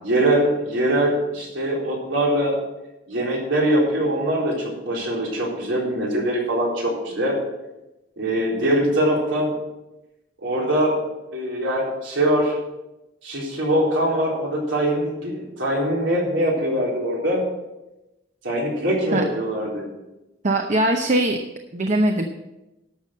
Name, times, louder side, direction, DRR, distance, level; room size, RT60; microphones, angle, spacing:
voice 1, 0.0-2.6 3.1-7.3 8.2-9.5 10.4-11.0 11.3-12.6 13.2-17.4 18.4-19.9, right 1 dB, 85° right, -3 dB, 4.0 m, -22 dB
voice 2, 20.4-21.4 21.7-22.2, right 1 dB, 40° right, 4 dB, 0.8 m, -20 dB
12.0 x 6.8 x 6.5 m, 0.98 s
head